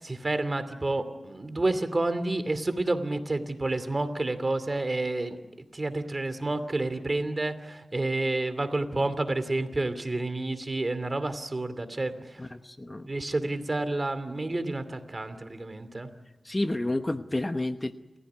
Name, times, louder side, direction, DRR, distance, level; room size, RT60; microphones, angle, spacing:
voice 1, 0.0-5.4 5.7-12.4 13.0-16.1, right 2 dB, 35° right, 11 dB, 2.6 m, -29 dB
voice 2, 12.4-13.1 16.4-18.2, left 1 dB, 25° left, 9 dB, 1.0 m, -30 dB
29.0 x 15.5 x 9.6 m, 1.1 s
cardioid pair, 65°, 0 cm